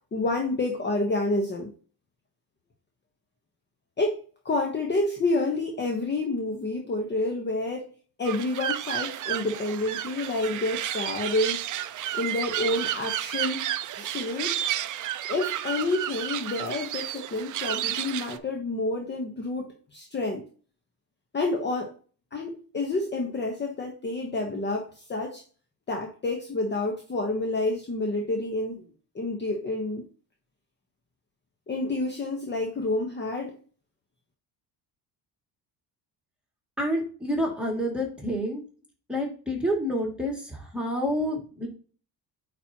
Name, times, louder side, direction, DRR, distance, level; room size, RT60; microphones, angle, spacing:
voice 1, 0.1-1.7 4.0-7.9 8.2-11.6 12.1-14.6 15.3-20.4 21.3-21.9 22.3-25.4 25.9-28.9 29.1-30.1 31.7-33.6, left 2 dB, 25° left, 1.1 m, -29 dB
sound 1, 8.2-18.4, right 12 dB, 50° right, 0.5 m, -31 dB
voice 2, 36.8-38.6 39.1-41.7, equal, 5° right, 2.3 m, -28 dB
9.1 x 4.3 x 2.9 m
cardioid pair, 135°, 41 cm